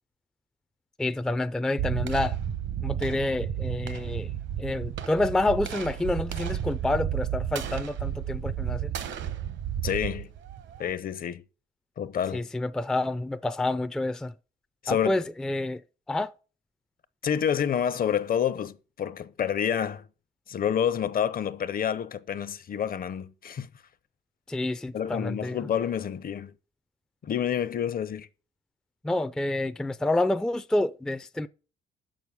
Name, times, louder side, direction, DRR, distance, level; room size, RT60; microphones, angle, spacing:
voice 1, 1.0-2.4 2.8-4.3 4.6-8.9 12.3-14.3 14.9-15.8 16.1-16.3 24.5-25.6 29.0-31.5, left 2 dB, 5° left, 0.4 m, -28 dB
sound 1, 1.8-10.9, right 10 dB, 70° right, 0.9 m, -32 dB
voice 2, 9.8-10.3 10.8-11.4 12.0-12.4 14.8-15.2 17.2-20.0 20.5-23.7 24.9-26.5 27.2-28.3, left 8 dB, 45° left, 0.7 m, -28 dB
6.8 x 6.2 x 6.8 m
cardioid pair, 90°, 20 cm